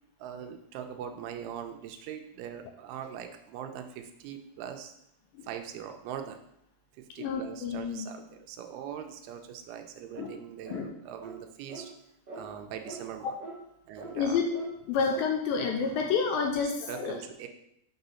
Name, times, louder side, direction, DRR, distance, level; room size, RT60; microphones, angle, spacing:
voice 1, 0.2-4.9 5.4-6.4 7.0-11.9 12.3-13.3 13.9-14.4 16.9-17.5, right 9 dB, 80° right, 6 dB, 2.4 m, -41 dB
voice 2, 7.2-8.1 10.2-10.3 10.7-10.9 14.1-14.5 14.9-17.2, left 5 dB, 80° left, 3 dB, 2.2 m, -29 dB
sound 1, 10.1-10.4 10.6-10.9 11.2-11.4 11.7-11.9 12.3-12.4 12.8-13.0 13.4-13.6 14.0-14.1 14.5-14.7 15.1-15.3, right 3 dB, 40° right, 1.8 m, -42 dB
6.0 x 3.9 x 5.5 m, 0.76 s
omnidirectional pair, 4.5 m